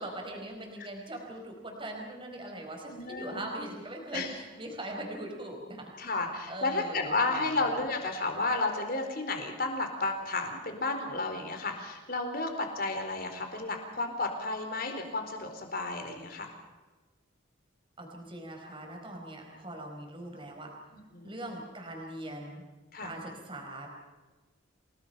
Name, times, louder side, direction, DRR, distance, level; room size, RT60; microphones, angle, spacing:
voice 1, 0.0-6.1 6.5-7.4 18.0-20.7 21.2-22.6 23.0-23.9, right 1 dB, 25° right, 1 dB, 4.6 m, -41 dB
voice 2, 2.9-3.5 4.1-4.3 6.0-16.5 21.1-21.3 22.9-23.1, left 3 dB, 45° left, 5 dB, 4.4 m, -32 dB
29.0 x 19.0 x 5.7 m, 1.3 s
head